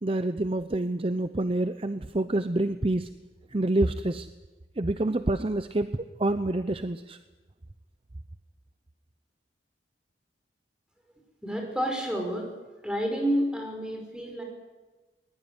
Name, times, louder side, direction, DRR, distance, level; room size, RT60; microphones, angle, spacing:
voice 1, 0.0-3.1 3.5-4.3 4.8-5.9 6.2-7.2, right 2 dB, 30° right, 11 dB, 0.7 m, -27 dB
voice 2, 11.4-12.5 12.8-14.4, equal, 5° right, 2 dB, 5.5 m, -29 dB
21.0 x 21.0 x 9.8 m, 1.2 s
head